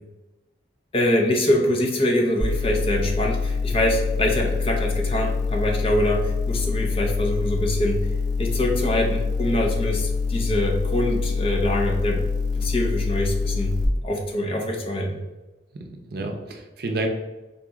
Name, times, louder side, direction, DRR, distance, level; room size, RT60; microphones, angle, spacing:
voice 1, 0.9-8.0 8.4-12.2 12.6-13.8 14.0-15.2, left 1 dB, 30° left, 1 dB, 0.6 m, -24 dB
sound 1, 2.4-13.9, left 4 dB, 35° right, 1.1 m, -25 dB
voice 2, 15.7-17.1, right 2 dB, 55° right, 3 dB, 0.6 m, -30 dB
4.0 x 2.9 x 3.5 m, 1.1 s
head